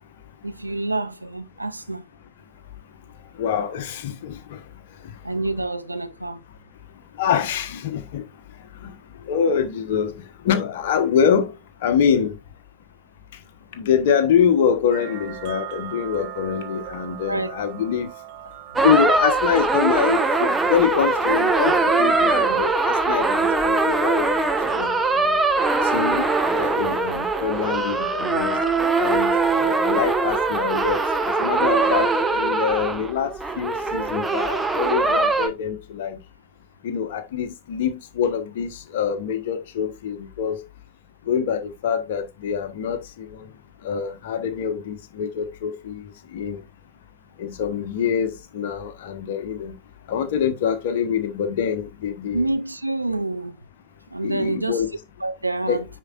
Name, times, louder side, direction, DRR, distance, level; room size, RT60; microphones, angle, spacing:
voice 1, 0.4-2.1 5.2-6.4 17.2-17.6 33.9-34.0 52.3-53.6 54.1-54.8 55.2-55.9, right 2 dB, 90° right, 0.6 m, -27 dB
voice 2, 3.4-4.6 7.2-8.2 8.8-8.9 9.3-11.5 11.8-12.4 13.8-18.1 18.8-25.3 25.9-29.3 29.8-31.0 31.4-36.2 36.8-40.6 41.3-43.4 43.8-46.0 46.3-46.6 47.4-49.7 50.1-52.4 54.2-54.9 55.7-55.8, left 7 dB, 55° left, 1.2 m, -25 dB
sound 1, 14.9-33.0, right 8 dB, 50° right, 1.2 m, -36 dB
sound 2, 18.8-35.5, right 3 dB, 10° right, 1.0 m, -22 dB
9.7 x 4.7 x 2.5 m
figure-of-eight pair, 90°, 0 cm